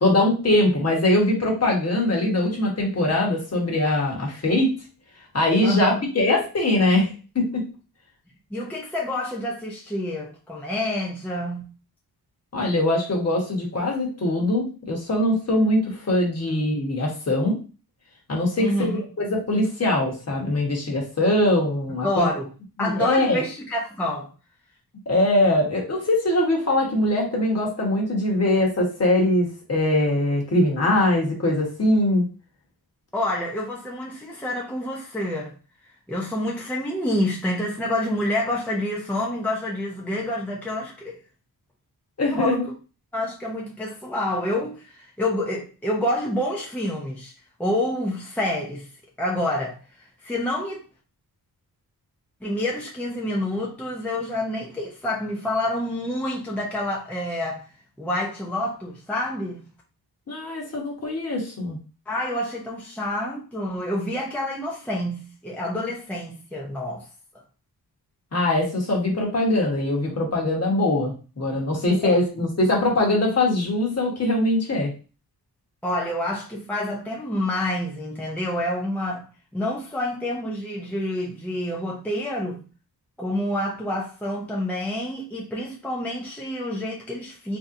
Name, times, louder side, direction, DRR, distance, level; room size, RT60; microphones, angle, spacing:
voice 1, 0.0-4.7 5.3-7.6 12.5-17.6 18.3-18.9 19.2-22.3 22.8-23.4 25.1-32.2 42.2-42.7 60.3-61.8 68.3-74.9, left 1 dB, 40° left, 1.2 m, -22 dB
voice 2, 5.6-6.0 8.5-11.6 18.6-19.0 22.0-22.5 22.8-24.3 33.1-35.5 36.1-41.1 42.3-42.6 43.1-47.3 47.6-48.9 49.2-50.8 52.4-57.7 58.0-59.6 62.1-67.1 72.0-72.2 75.8-79.3 79.5-82.6 83.2-87.6, left 1 dB, 5° left, 0.6 m, -28 dB
3.6 x 2.8 x 2.6 m
wide cardioid pair, 120°, 38 cm